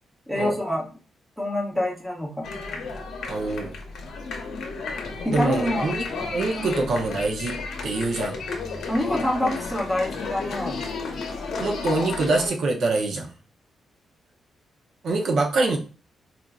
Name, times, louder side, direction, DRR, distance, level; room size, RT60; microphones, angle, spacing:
voice 1, 0.3-0.9 1.4-2.5 5.2-6.2 6.6-6.9 8.9-10.8, left 1 dB, ahead, -2 dB, 0.7 m, -27 dB
sound 1, 2.4-12.5, left 4 dB, 70° left, 0.8 m, -32 dB
voice 2, 3.3-3.7 5.2-6.1 6.3-7.5 7.8-8.4 11.6-13.3 15.0-15.8, right 3 dB, 55° right, 1 dB, 0.6 m, -24 dB
4.3 x 2.5 x 2.3 m, 0.36 s
wide cardioid pair, 180°, 0 cm